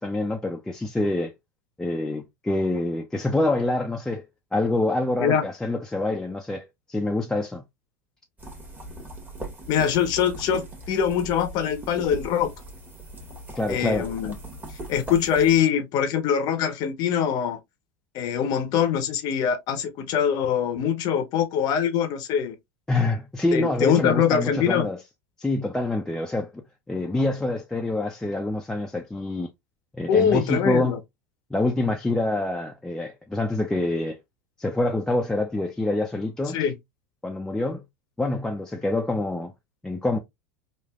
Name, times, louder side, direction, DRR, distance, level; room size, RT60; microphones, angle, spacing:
voice 1, 0.0-1.3 1.8-4.2 4.5-7.6 13.5-14.1 22.9-25.0 25.4-26.5 26.9-29.5 29.9-31.0 31.5-34.2 34.6-36.7 37.2-37.8 38.2-39.5 39.8-40.2, left 2 dB, 5° left, 0.4 m, -26 dB
sound 1, 8.4-15.6, right 1 dB, 20° right, 1.3 m, -39 dB
voice 2, 9.7-12.5 13.7-14.3 14.9-17.6 18.1-22.6 23.5-24.9 30.1-31.0 36.5-36.7, left 8 dB, 50° left, 0.6 m, -23 dB
3.2 x 2.4 x 2.3 m
hypercardioid pair, 90°, 9 cm